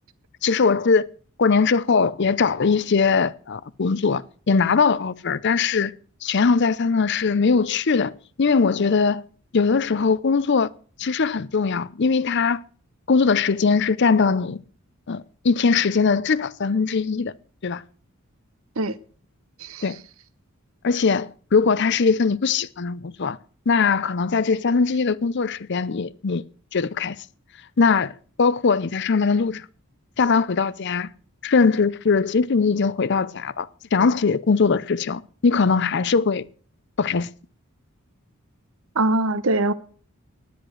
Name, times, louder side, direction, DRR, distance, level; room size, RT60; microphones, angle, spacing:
voice 1, 0.4-1.0 1.4-4.2 4.5-5.9 6.2-9.2 9.5-10.7 11.0-12.6 13.1-14.6 15.1-17.3 17.6-17.8 19.8-20.0 20.8-23.4 23.7-26.4 26.7-27.2 27.8-28.1 28.4-29.6 30.2-31.1 31.4-36.5 37.0-37.3, left 5 dB, 50° left, 0.5 m, -21 dB
voice 2, 38.9-39.7, right 2 dB, 70° right, 0.9 m, -22 dB
10.0 x 10.0 x 6.4 m
head